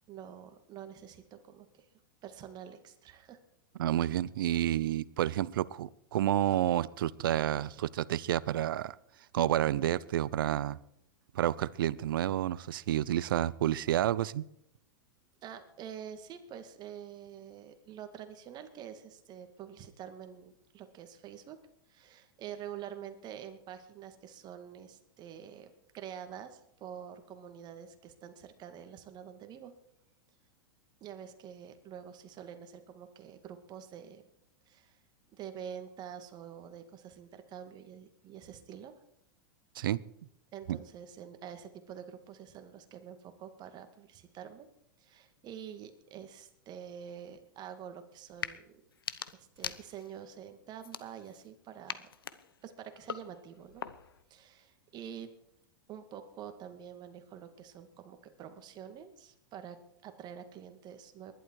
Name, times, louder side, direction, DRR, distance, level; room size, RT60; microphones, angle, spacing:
voice 1, 0.1-1.9 2.2-3.4 15.4-21.6 21.9-29.7 31.0-34.2 34.7-35.0 35.3-38.9 40.5-44.7 45.0-48.7 49.3-52.1 52.6-53.8 54.3-55.3 55.9-61.3, right 9 dB, 35° right, 8 dB, 2.2 m, -47 dB
voice 2, 3.8-9.0 9.3-10.8 11.3-14.5 39.8-40.0 40.7-40.8, right 12 dB, 75° right, 20 dB, 0.7 m, -30 dB
sound 1, 48.3-48.6 48.9-50.2 50.8-51.5 51.9-54.2, left 7 dB, 90° left, 1.0 m, -43 dB
20.0 x 11.5 x 4.7 m, 0.76 s
hypercardioid pair, 110°, 12 cm